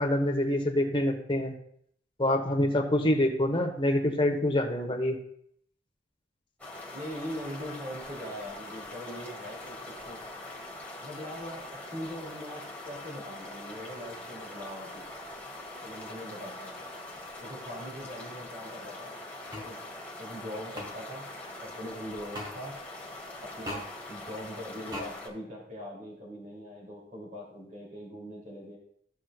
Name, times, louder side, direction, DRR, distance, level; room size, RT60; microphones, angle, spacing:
voice 1, 0.0-1.5 2.2-5.2, left 1 dB, 30° left, 3 dB, 1.1 m, -26 dB
sound 1, 6.6-25.3, left 2 dB, 10° left, 1.6 m, -43 dB
voice 2, 6.9-10.2 11.0-15.0 15.8-16.7 17.4-19.1 19.6-19.8 20.2-21.3 21.6-22.8 23.4-28.8, equal, 45° right, -3 dB, 2.7 m, -41 dB
sound 2, 19.5-19.7 20.7-20.9 22.3-22.5 23.6-23.9 24.9-25.1, left 1 dB, 25° right, 1.6 m, -37 dB
14.0 x 6.2 x 2.4 m, 0.67 s
head